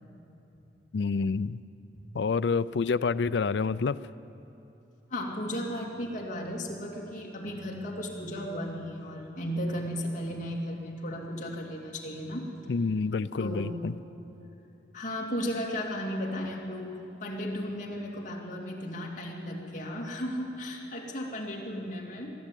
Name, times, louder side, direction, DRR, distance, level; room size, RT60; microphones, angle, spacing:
voice 1, 0.9-1.6 2.1-4.0 12.7-13.9, left 4 dB, 75° left, 17 dB, 0.4 m, -28 dB
voice 2, 5.1-12.5 13.4-13.8 14.9-16.9 17.2-22.3, equal, 45° left, -2 dB, 2.8 m, -35 dB
21.5 x 13.5 x 9.2 m, 2.9 s
head